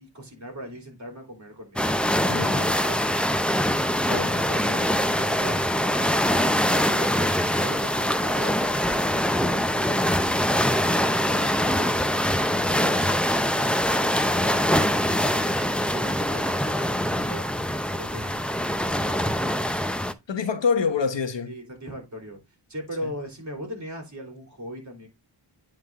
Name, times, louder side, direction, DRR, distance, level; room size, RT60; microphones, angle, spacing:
voice 1, 0.0-8.5 12.7-19.9 21.5-22.4 22.7-25.1, equal, 40° right, 3.4 m, -40 dB
sound 1, 1.8-20.1, equal, ahead, 0.6 m, -23 dB
voice 2, 2.3-2.7 4.1-4.3 20.3-21.5 23.0-23.1, left 5 dB, 70° left, 1.2 m, -26 dB
9.2 x 3.8 x 3.5 m
wide cardioid pair, 80°, 45 cm